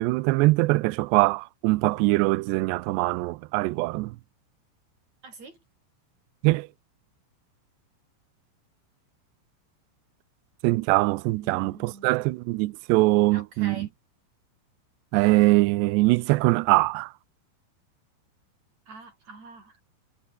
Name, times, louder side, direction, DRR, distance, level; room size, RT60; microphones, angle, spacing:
voice 1, 0.0-4.2 6.4-6.7 10.6-13.9 15.1-17.1, right 21 dB, 90° right, 2.5 m, -22 dB
voice 2, 5.2-5.6 11.3-12.1 13.3-13.9 18.9-19.8, right 3 dB, 35° right, 8.5 m, -45 dB
omnidirectional pair, 5.6 m